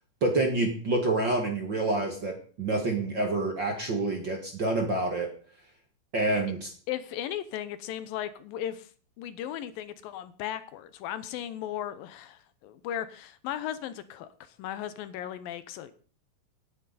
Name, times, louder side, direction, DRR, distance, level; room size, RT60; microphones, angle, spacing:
voice 1, 0.2-5.3 6.1-6.7, right 2 dB, 40° right, 2 dB, 1.9 m, -27 dB
voice 2, 6.9-8.9 9.2-15.9, left 11 dB, 80° left, 13 dB, 2.5 m, -36 dB
17.5 x 9.8 x 4.2 m, 0.42 s
omnidirectional pair, 4.2 m